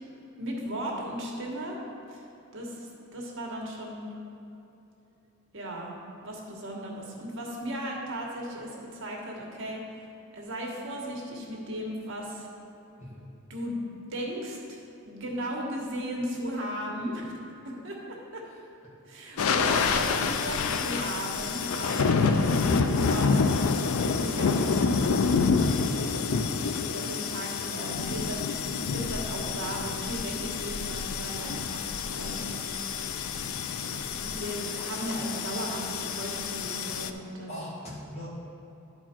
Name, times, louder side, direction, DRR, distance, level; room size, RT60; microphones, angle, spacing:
voice 1, 0.4-1.8 2.1-2.2 2.5-4.1 5.5-5.9 6.2-10.1 10.3-12.5 13.5-13.7 14.1-17.3 17.6-18.4 19.1-23.5 24.0-25.6 26.8-31.8 32.1-32.7 33.8-37.5, right 1 dB, 65° right, -2 dB, 1.4 m, -36 dB
sound 1, 19.4-37.1, left 5 dB, 85° left, 0.4 m, -28 dB
voice 2, 37.5-38.5, equal, 30° left, -7 dB, 1.9 m, -41 dB
11.0 x 4.4 x 4.4 m, 2.9 s
head